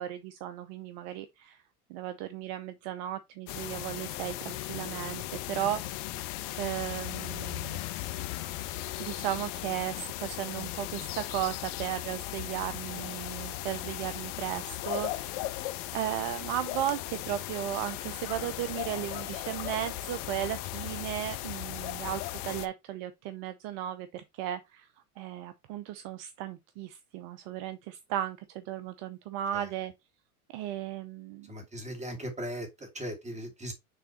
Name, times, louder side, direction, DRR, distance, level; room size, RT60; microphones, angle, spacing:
voice 1, 0.0-1.6 1.9-5.8 6.2-6.3 6.6-7.8 9.0-15.4 15.9-24.9 25.2-29.9 30.5-31.5, right 12 dB, 50° right, 0.7 m, -35 dB
sound 1, 3.5-22.7, left 15 dB, 50° left, 0.9 m, -37 dB
voice 2, 31.5-33.7, equal, 15° right, 2.5 m, -38 dB
6.7 x 3.5 x 4.1 m
hypercardioid pair, 100°, 45 cm